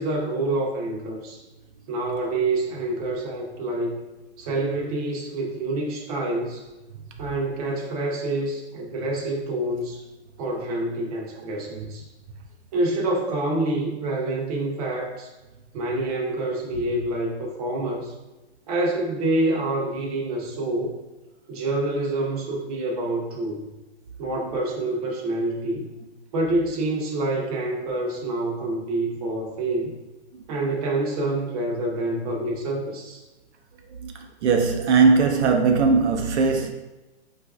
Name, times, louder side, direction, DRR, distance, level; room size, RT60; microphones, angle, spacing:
voice 1, 0.0-1.4 1.9-4.0 4.4-6.6 7.2-10.0 10.4-12.1 12.7-15.3 15.7-18.1 18.7-21.0 21.5-23.6 24.2-25.9 26.3-30.0 30.5-33.2, right 2 dB, 35° right, 0.6 m, -27 dB
voice 2, 34.4-36.7, right 4 dB, 75° right, 0.5 m, -19 dB
4.8 x 2.4 x 2.3 m
hypercardioid pair, 160°, 34 cm